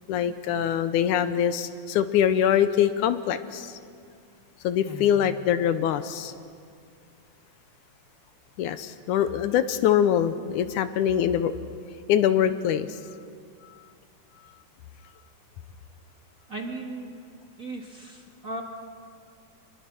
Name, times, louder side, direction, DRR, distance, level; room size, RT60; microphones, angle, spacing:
voice 1, 0.1-3.8 4.6-6.3 8.6-11.5 12.1-12.9, left 9 dB, 80° left, 11 dB, 2.2 m, -23 dB
voice 2, 4.8-5.2 16.5-17.1 17.6-18.6, right 2 dB, 35° right, 0 dB, 1.7 m, -37 dB
26.0 x 22.0 x 6.1 m, 2.2 s
omnidirectional pair, 3.6 m